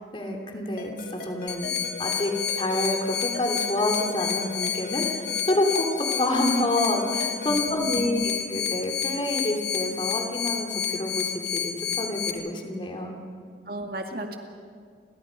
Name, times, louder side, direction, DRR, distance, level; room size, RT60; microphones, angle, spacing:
voice 1, 0.1-0.9 1.2-13.1, left 1 dB, 30° left, 2 dB, 3.0 m, -28 dB
Ringtone, 0.8-7.6, left 3 dB, 55° left, 5.3 m, -41 dB
sound 1, 1.5-12.3, left 8 dB, 90° left, 2.0 m, -30 dB
voice 2, 7.5-8.4 13.7-14.4, right 1 dB, 55° right, 3 dB, 2.3 m, -35 dB
30.0 x 24.5 x 5.3 m, 2.1 s
head